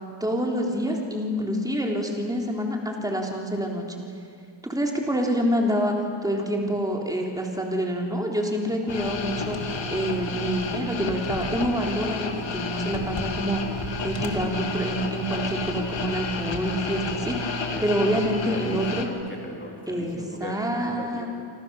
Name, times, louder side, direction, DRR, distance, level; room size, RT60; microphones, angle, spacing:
voice 1, 0.2-3.9 4.6-6.0 6.2-13.6 14.0-19.1 19.9-21.3, equal, 10° right, 0 dB, 3.5 m, -27 dB
sound 1, 8.9-19.1, left 3 dB, 65° left, 2.3 m, -31 dB
voice 2, 17.7-21.3, left 1 dB, 25° left, -1 dB, 3.9 m, -38 dB
27.0 x 27.0 x 7.0 m, 2.3 s
wide cardioid pair, 125°, 48 cm